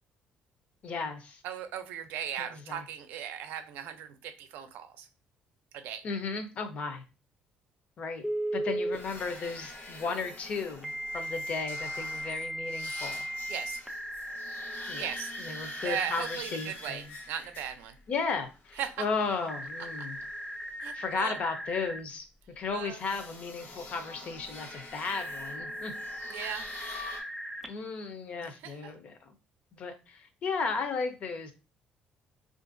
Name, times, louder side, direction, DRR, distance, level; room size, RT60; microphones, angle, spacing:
voice 1, 0.8-1.4 2.4-2.8 6.0-7.0 8.0-8.3 8.5-13.3 14.9-15.1 15.4-17.0 18.1-20.2 20.9-22.2 22.6-25.9 27.7-29.3 29.7-31.5, left 4 dB, 45° left, 7 dB, 0.5 m, -35 dB
voice 2, 1.4-5.1 5.7-6.1 13.5-13.8 15.0-15.3 15.8-18.0 18.8-19.1 20.0-20.1 20.8-21.4 22.7-23.0 26.3-26.7 28.4-28.9, right 9 dB, 90° right, 9 dB, 0.5 m, -38 dB
Telephone, 8.2-9.0 10.8-16.4 19.5-22.0 25.1-27.7, right 1 dB, 5° right, 0.3 m, -37 dB
sound 1, 8.9-18.0 18.5-20.7 22.9-27.2, left 2 dB, 70° left, 1.0 m, -46 dB
3.6 x 2.5 x 2.5 m, 0.30 s
cardioid pair, 155°, 3 cm